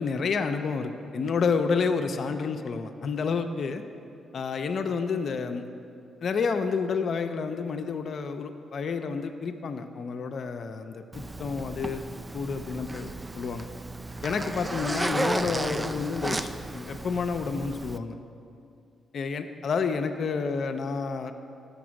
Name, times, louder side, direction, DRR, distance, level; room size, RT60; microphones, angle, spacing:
voice 1, 0.0-3.8 4.3-5.6 6.2-12.0 12.3-13.1 13.4-13.7 14.2-18.2 19.1-21.3, left 5 dB, 60° left, 7 dB, 0.4 m, -29 dB
Zipper (clothing), 11.1-18.0, right 2 dB, 20° right, 0.3 m, -34 dB
6.5 x 6.0 x 6.2 m, 2.5 s
supercardioid pair, 60°, 0 cm